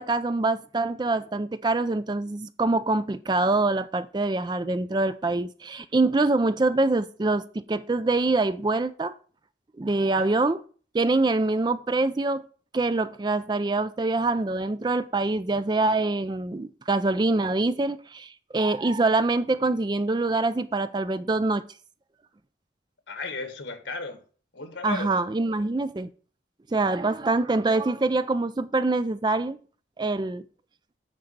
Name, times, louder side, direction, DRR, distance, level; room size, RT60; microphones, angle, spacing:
voice 1, 0.0-9.1 9.8-10.6 10.9-12.4 12.7-21.6 24.8-26.1 26.7-29.6 30.0-30.4, right 2 dB, 25° right, 0.4 m, -25 dB
voice 2, 10.0-10.3 23.1-24.2 24.5-25.1, left 3 dB, 85° left, 1.7 m, -35 dB
9.4 x 4.0 x 6.6 m
head